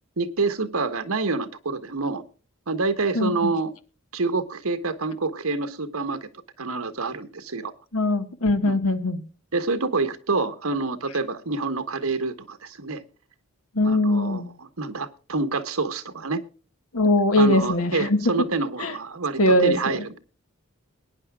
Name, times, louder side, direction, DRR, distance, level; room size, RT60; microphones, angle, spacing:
voice 1, 0.2-2.2 2.7-3.7 4.1-6.3 6.6-7.7 8.6-8.8 9.5-13.0 13.8-16.4 17.4-20.2, right 3 dB, 90° right, 1.4 m, -27 dB
voice 2, 3.1-3.5 7.9-9.2 13.7-14.5 16.9-18.2 18.8-18.9 19.4-20.0, left 1 dB, 85° left, 1.7 m, -21 dB
22.0 x 10.0 x 2.4 m
head